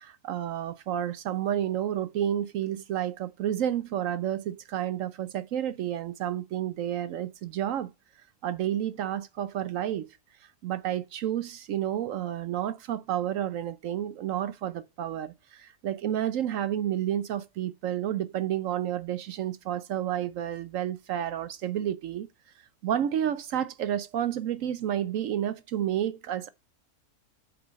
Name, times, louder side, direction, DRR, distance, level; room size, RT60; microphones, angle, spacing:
voice 1, 0.0-7.9 8.4-10.1 10.6-22.3 22.8-26.5, right 11 dB, 70° right, 0.9 m, -30 dB
8.0 x 4.7 x 5.1 m
omnidirectional pair, 1.6 m